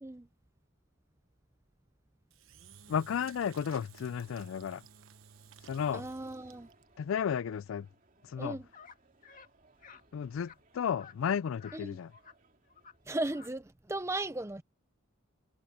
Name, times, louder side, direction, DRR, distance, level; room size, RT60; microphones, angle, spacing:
Engine / Drill, 2.3-6.8, right 6 dB, 80° right, 1.1 m, -55 dB
voice 1, 2.9-4.8 5.7-6.0 7.0-7.9 8.3-8.6 10.1-12.1, left 7 dB, 75° left, 0.3 m, -33 dB
sound 1, 4.3-13.4, right 1 dB, 40° right, 2.9 m, -65 dB
voice 2, 5.9-6.7 8.4-8.7 11.7-12.0 13.1-14.6, right 2 dB, 15° right, 0.6 m, -36 dB
sound 2, 8.7-9.0 9.2-9.5 9.8-10.0 10.4-10.6 11.0-11.2 11.6-11.8 12.1-12.3 12.7-12.9 13.2-13.5, left 6 dB, 40° left, 2.0 m, -54 dB
head